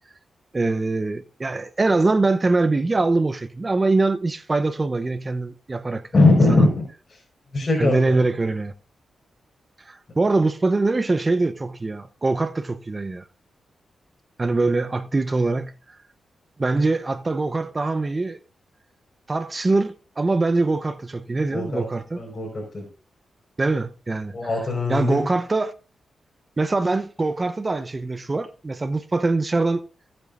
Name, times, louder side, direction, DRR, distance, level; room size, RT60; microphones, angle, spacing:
voice 1, 0.5-6.0 6.3-6.7 7.8-8.7 9.9-13.2 14.4-15.7 16.6-18.4 19.3-22.2 23.6-24.3 24.9-25.7 26.6-29.8, right 3 dB, 35° right, 0.9 m, -23 dB
voice 2, 6.1-6.8 7.5-8.1 21.5-21.8 22.2-22.9 24.3-25.3, left 2 dB, 45° left, 5.2 m, -20 dB
18.0 x 8.9 x 2.6 m
supercardioid pair, 50°, 0 cm